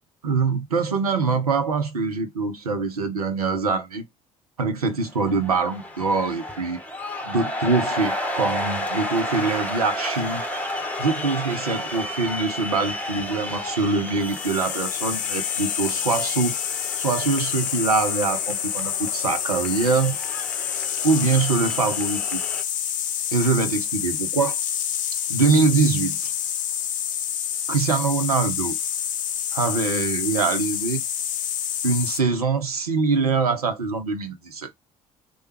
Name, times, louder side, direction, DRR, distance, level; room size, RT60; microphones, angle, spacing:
voice 1, 0.2-4.0 4.6-6.8 7.2-10.4 11.0-16.6 17.0-20.2 21.0-22.4 23.3-24.6 25.3-26.3 27.7-28.8 29.5-31.0 31.8-34.7, right 4 dB, 85° right, 0.6 m, -23 dB
sound 1, 5.0-22.6, left 1 dB, 10° left, 1.0 m, -32 dB
sound 2, 14.2-32.2, left 9 dB, 45° left, 0.5 m, -28 dB
3.2 x 2.3 x 2.9 m
figure-of-eight pair, 50°, 19 cm